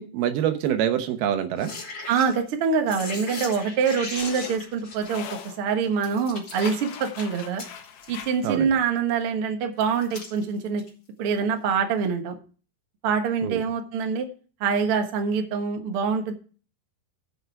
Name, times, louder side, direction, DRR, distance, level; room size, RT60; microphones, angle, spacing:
voice 1, 0.0-1.7 8.4-8.7 13.4-13.6, right 10 dB, 75° right, 8 dB, 2.8 m, -25 dB
sound 1, 1.6-2.5 2.9-5.5 6.0-8.1 9.8-10.9 11.7-11.8, left 3 dB, 30° left, 3.0 m, -38 dB
voice 2, 2.1-7.6 8.1-10.8 11.2-12.4 13.0-14.3 14.6-16.3, right 6 dB, 90° right, 5 dB, 1.2 m, -25 dB
sound 2, 3.5-6.0 6.5-8.6, left 8 dB, 80° left, 3.3 m, -40 dB
13.5 x 6.6 x 4.6 m, 0.39 s
omnidirectional pair, 4.8 m